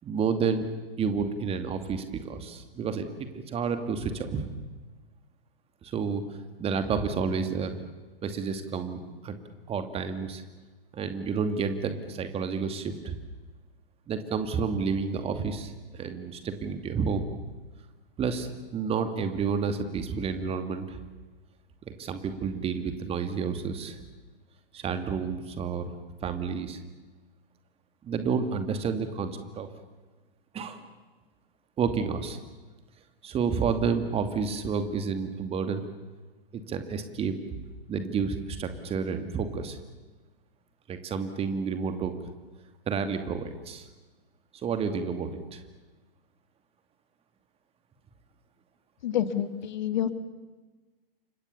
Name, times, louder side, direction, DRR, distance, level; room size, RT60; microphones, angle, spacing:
voice 1, 0.0-0.7 1.0-3.1 3.3-4.5 5.8-6.2 6.6-7.8 8.2-9.4 9.7-10.4 10.9-13.2 14.1-17.2 18.2-21.0 22.0-24.0 24.7-25.9 26.2-26.8 28.0-29.7 30.5-30.8 31.8-32.4 33.2-35.8 36.5-37.4 37.9-39.8 40.9-42.1 42.9-43.8 44.6-45.6, right 5 dB, 20° right, 9 dB, 2.5 m, -30 dB
voice 2, 49.0-50.1, left 10 dB, 50° left, 12 dB, 2.1 m, -28 dB
29.5 x 25.5 x 7.0 m, 1.3 s
figure-of-eight pair, 110°, 29 cm